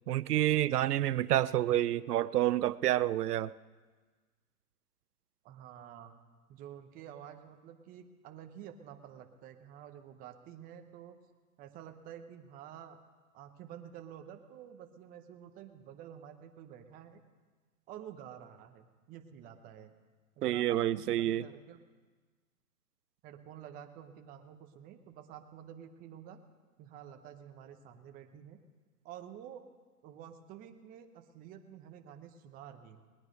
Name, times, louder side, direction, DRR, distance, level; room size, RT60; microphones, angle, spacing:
voice 1, 0.1-3.5 20.4-21.4, right 13 dB, 80° right, 0.6 m, -28 dB
voice 2, 1.2-1.6 5.4-6.1 6.5-11.2 11.6-13.0 13.3-17.2 17.9-19.9 20.4-21.8 23.2-26.4 26.8-28.6 29.0-29.6 30.0-33.0, right 9 dB, 20° right, 0.8 m, -50 dB
20.0 x 9.7 x 5.2 m
hypercardioid pair, 135°, 46 cm